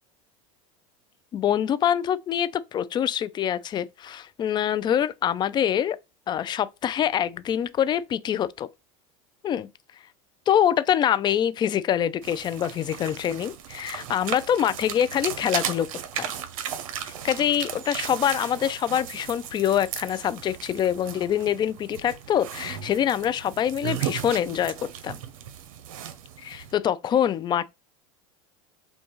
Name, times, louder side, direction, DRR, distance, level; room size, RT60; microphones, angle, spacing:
voice 1, 1.3-6.0 6.3-8.7 9.4-9.7 10.5-15.9 16.2-16.3 17.2-24.7 25.0-25.2 26.4-27.7, left 9 dB, 25° left, 0.3 m, -25 dB
sound 1, 12.2-26.7, right 9 dB, 85° right, 0.7 m, -36 dB
5.3 x 2.2 x 3.0 m
supercardioid pair, 120°, 17 cm